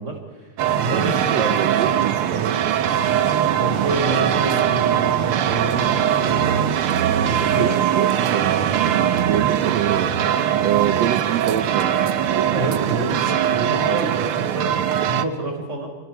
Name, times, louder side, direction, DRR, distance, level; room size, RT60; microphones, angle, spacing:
voice 1, 0.0-1.7 2.3-3.2 3.6-6.7 7.2-7.8 9.0-9.1 12.5-15.9, right 2 dB, 20° right, 2 dB, 4.6 m, -29 dB
sound 1, 0.6-15.2, right 10 dB, 85° right, 1.1 m, -21 dB
voice 2, 0.9-2.4 7.4-7.7 8.0-8.5 9.3-10.2 10.6-12.2, right 11 dB, 65° right, 9 dB, 1.9 m, -25 dB
sound 2, 9.0-15.0, left 1 dB, 5° left, 7.0 m, -46 dB
29.0 x 23.5 x 4.7 m, 1.4 s
omnidirectional pair, 3.7 m